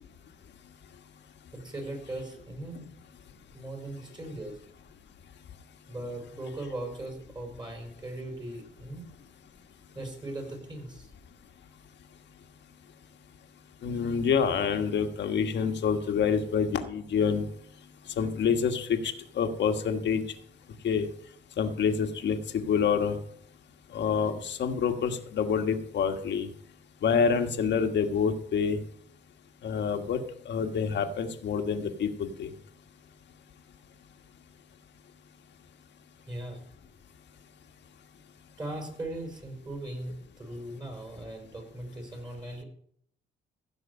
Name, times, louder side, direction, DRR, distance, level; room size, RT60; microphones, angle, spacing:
voice 1, 1.5-2.9 3.5-4.6 5.9-9.1 9.9-11.1 36.3-36.6 38.6-42.6, right 1 dB, 20° right, 2 dB, 4.8 m, -39 dB
voice 2, 13.8-17.4 18.2-20.2 20.8-21.1 21.6-23.2 23.9-26.5 27.0-28.8 29.6-30.2 30.4-32.5, left 6 dB, 65° left, 6 dB, 1.4 m, -27 dB
15.5 x 6.4 x 5.4 m, 0.66 s
cardioid pair, 90°, 20 cm